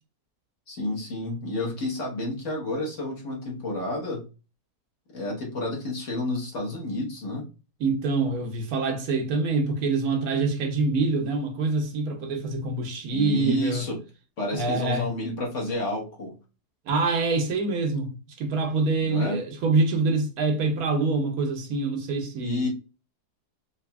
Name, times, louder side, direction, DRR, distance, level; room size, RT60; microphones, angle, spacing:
voice 1, 0.7-4.2 5.1-7.5 13.1-14.0 14.4-16.3 19.0-19.4 22.4-22.7, left 1 dB, 50° left, 1.4 m, -30 dB
voice 2, 7.8-13.8 14.5-15.1 16.9-22.7, right 3 dB, 70° right, 1.1 m, -25 dB
4.1 x 2.7 x 2.2 m
omnidirectional pair, 1.7 m